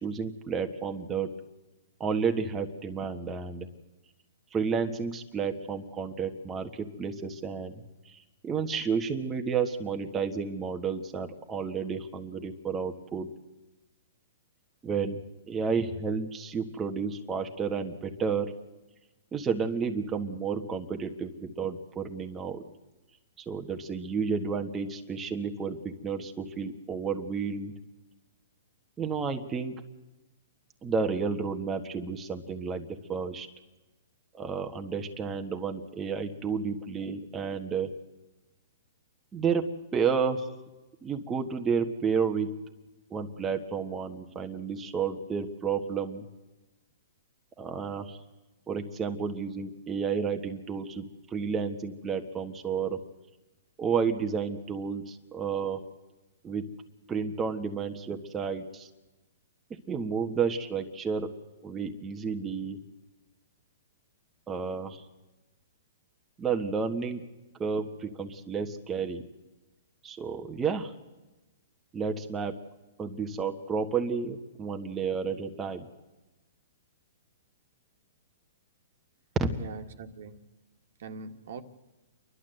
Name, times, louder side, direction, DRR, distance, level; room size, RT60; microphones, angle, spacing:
voice 1, 0.0-1.3 2.0-3.7 4.5-7.7 8.0-13.3 14.8-18.5 19.3-22.6 23.4-27.7 29.0-29.8 30.8-33.5 34.3-37.9 39.3-40.5 41.0-42.5 43.1-46.3 47.6-48.2 48.7-53.0 53.8-55.8 56.4-56.7 57.1-58.9 59.9-61.3 61.6-62.8 64.5-65.0 66.4-67.2 67.6-69.2 70.0-70.9 71.9-72.5 73.0-75.9 79.3-79.5, right 5 dB, 15° right, 4 dB, 1.4 m, -31 dB
voice 2, 79.5-80.5 81.0-81.6, right 4 dB, 60° right, 8 dB, 1.9 m, -42 dB
29.0 x 12.0 x 7.8 m, 1.1 s
hypercardioid pair, 145°, 0 cm